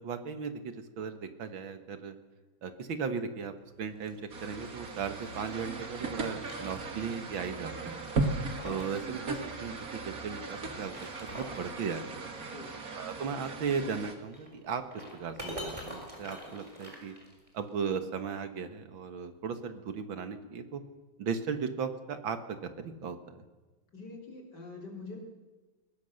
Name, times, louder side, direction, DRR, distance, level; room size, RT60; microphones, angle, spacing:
voice 1, 0.0-2.2 2.6-8.0 8.6-12.2 13.0-17.1 17.5-20.8 21.2-23.4, right 6 dB, 75° right, 9 dB, 2.4 m, -37 dB
sound 1, 3.8-5.6 6.1-7.3 7.6-7.7 8.2-9.0 9.3-9.4 10.6-11.7 13.6-17.7, equal, 15° right, 4.7 m, -45 dB
sound 2, 4.3-14.1, right 3 dB, 45° right, 2.4 m, -37 dB
voice 2, 7.6-8.0 12.4-12.8 23.9-25.2, left 3 dB, 55° left, 1 dB, 4.4 m, -45 dB
21.5 x 20.0 x 6.6 m, 1.2 s
omnidirectional pair, 2.2 m